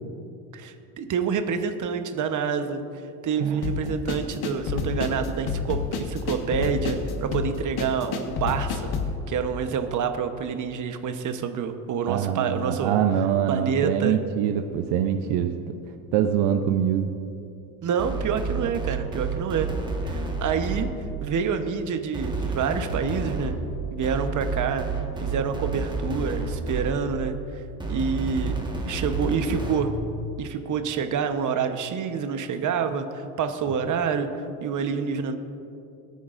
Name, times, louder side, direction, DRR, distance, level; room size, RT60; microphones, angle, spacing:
voice 1, 0.5-2.8 3.2-8.9 9.3-13.0 13.5-14.2 17.8-19.7 20.0-20.9 21.2-23.5 23.9-24.9 25.2-27.6 27.9-28.5 28.9-29.9 30.4-35.4, right 6 dB, 40° right, 7 dB, 1.0 m, -27 dB
voice 2, 3.4-4.0 12.1-15.6 16.1-17.1, right 9 dB, 60° right, 6 dB, 0.8 m, -24 dB
sound 1, 3.6-9.2, left 5 dB, 50° left, 1.5 m, -29 dB
sound 2, 18.0-21.3 22.1-27.3 27.8-30.0, right 3 dB, 10° right, 1.5 m, -30 dB
21.0 x 9.4 x 2.6 m, 2.6 s
supercardioid pair, 100°, 47 cm